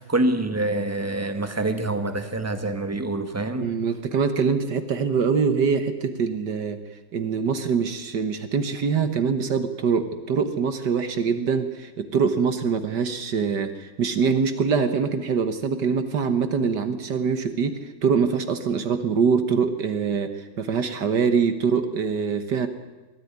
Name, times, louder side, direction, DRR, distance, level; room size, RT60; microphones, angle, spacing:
voice 1, 0.0-3.7, right 2 dB, 10° right, 8 dB, 1.3 m, -26 dB
voice 2, 3.6-6.8 7.1-22.7, right 6 dB, 65° right, 9 dB, 1.8 m, -24 dB
22.5 x 14.5 x 9.6 m, 1.2 s
omnidirectional pair, 2.1 m